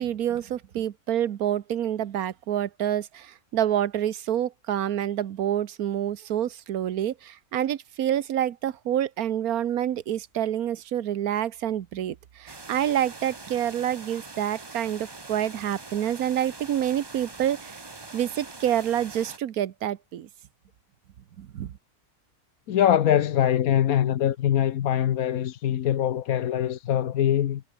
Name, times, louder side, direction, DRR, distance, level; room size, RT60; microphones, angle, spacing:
voice 1, 0.0-17.8 18.1-20.3 21.4-21.7, right 10 dB, 80° right, 1.4 m, -27 dB
sound 1, 12.5-19.4, right 3 dB, 20° right, 0.9 m, -43 dB
voice 2, 22.7-27.6, left 10 dB, 75° left, 1.3 m, -23 dB
omnidirectional pair, 1.6 m